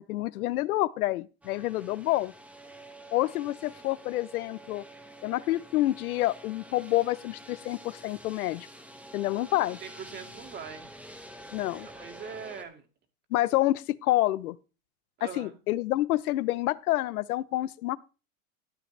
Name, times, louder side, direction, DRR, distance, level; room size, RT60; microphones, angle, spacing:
voice 1, 0.0-2.3 3.1-4.8 5.2-8.7 9.1-9.8 11.5-11.9 13.3-14.6 15.4-18.0, left 16 dB, 85° left, 0.9 m, -28 dB
sound 1, 1.4-12.6, right 1 dB, 5° right, 1.4 m, -48 dB
voice 2, 9.8-10.9 11.8-12.8 15.2-15.6, right 6 dB, 25° right, 2.4 m, -42 dB
13.5 x 11.0 x 3.3 m
supercardioid pair, 145°, 43 cm